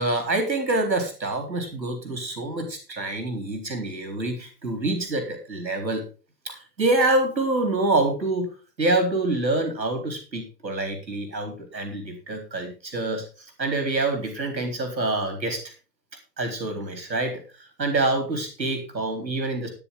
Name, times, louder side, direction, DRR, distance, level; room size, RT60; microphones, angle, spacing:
voice 1, 0.0-6.0 6.5-13.2 13.6-15.7 16.4-17.4 17.8-19.7, right 2 dB, 85° right, 5 dB, 4.1 m, -26 dB
13.5 x 10.5 x 3.8 m, 0.32 s
figure-of-eight pair, 105°, 50 cm